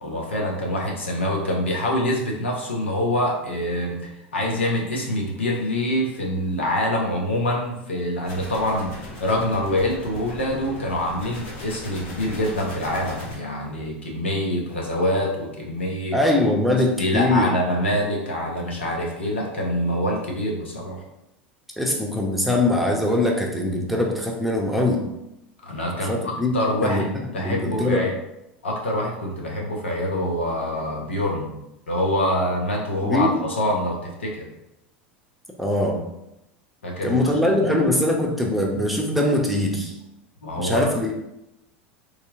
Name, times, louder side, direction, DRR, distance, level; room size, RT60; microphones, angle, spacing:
voice 1, 0.0-16.2 17.0-21.0 25.6-28.1 28.6-31.5 31.9-34.5 36.8-37.2 40.4-40.9, left 1 dB, 90° left, -1 dB, 0.9 m, -25 dB
sound 1, 8.2-13.3, left 2 dB, 55° left, 1.3 m, -38 dB
voice 2, 16.1-17.5 21.8-25.0 26.1-26.5 26.8-28.0 33.0-33.4 35.6-36.0 37.0-39.9 40.5-41.1, left 1 dB, ahead, -1 dB, 0.8 m, -22 dB
3.3 x 2.9 x 3.6 m, 0.87 s
hypercardioid pair, 85°, 6 cm